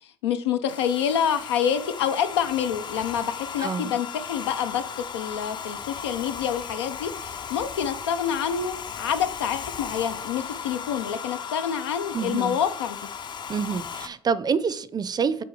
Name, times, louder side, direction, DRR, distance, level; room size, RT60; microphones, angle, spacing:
voice 1, 0.2-4.8 5.1-13.0, left 8 dB, 90° left, 0.5 m, -27 dB
Domestic sounds home sounds, 0.7-14.1, left 7 dB, 35° left, 0.5 m, -36 dB
voice 2, 3.6-4.0 12.1-12.6 13.5-15.4, right 6 dB, 30° right, 0.5 m, -27 dB
6.1 x 3.5 x 4.7 m
hypercardioid pair, 70°, 14 cm